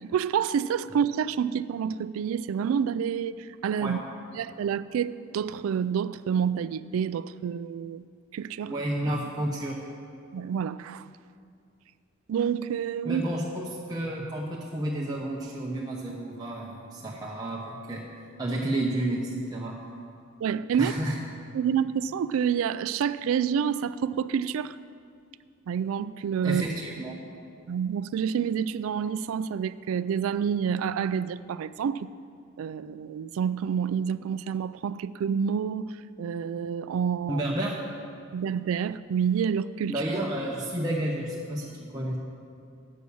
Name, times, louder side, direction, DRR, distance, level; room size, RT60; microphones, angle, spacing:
voice 1, 0.0-4.0 4.4-8.0 8.3-8.7 10.3-11.1 12.3-13.2 20.4-20.9 21.5-24.8 25.7-26.6 27.7-32.1 32.6-35.9 36.2-37.4 38.3-39.9, right 7 dB, 80° right, 16 dB, 0.3 m, -28 dB
voice 2, 8.6-9.8 13.0-18.1 18.4-19.8 20.8-21.2 26.4-27.1 37.3-37.8 39.9-42.2, right 1 dB, 20° right, -4 dB, 0.7 m, -31 dB
8.4 x 6.3 x 6.9 m, 2.3 s
head